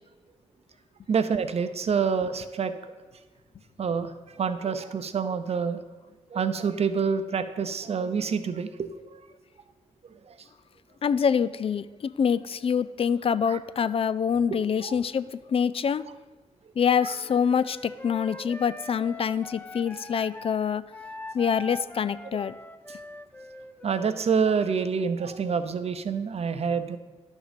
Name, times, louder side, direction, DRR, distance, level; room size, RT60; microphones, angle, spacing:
voice 1, 1.1-2.7 3.8-4.1 4.4-5.8 6.3-9.2 10.3-10.4 13.5-13.6 14.8-15.0 17.0-17.1 18.3-18.4 23.8-27.0, right 6 dB, 55° right, 10 dB, 0.7 m, -27 dB
voice 2, 11.0-11.8 12.2-16.0 16.8-20.8 21.3-22.5, left 7 dB, 50° left, 16 dB, 0.4 m, -25 dB
Wind instrument woodwind instrument, 17.0-20.6 20.9-24.7, left 1 dB, 15° left, 0.8 m, -42 dB
10.5 x 6.4 x 5.2 m, 1.3 s
cardioid pair, 60°, 12 cm